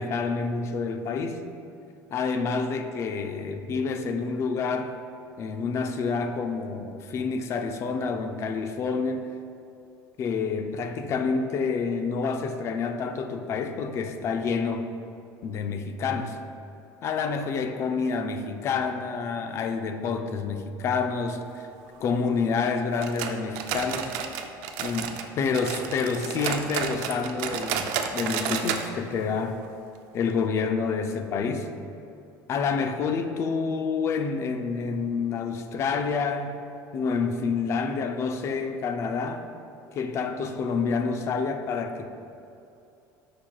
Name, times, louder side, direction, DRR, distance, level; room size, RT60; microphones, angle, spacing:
voice 1, 0.0-1.4 2.1-5.0 5.4-9.3 10.2-14.9 15.4-16.4 17.0-21.7 22.0-24.1 24.8-29.6 30.1-31.7 32.5-36.6 36.9-39.5 39.9-42.1, left 5 dB, 40° left, 7 dB, 0.4 m, -28 dB
sound 1, 23.0-25.3 25.5-28.9 29.1-29.2 29.6-29.7 30.3-30.4, right 7 dB, 80° right, 0.5 m, -31 dB
10.5 x 4.6 x 2.3 m, 2.6 s
cardioid pair, 135°, 7 cm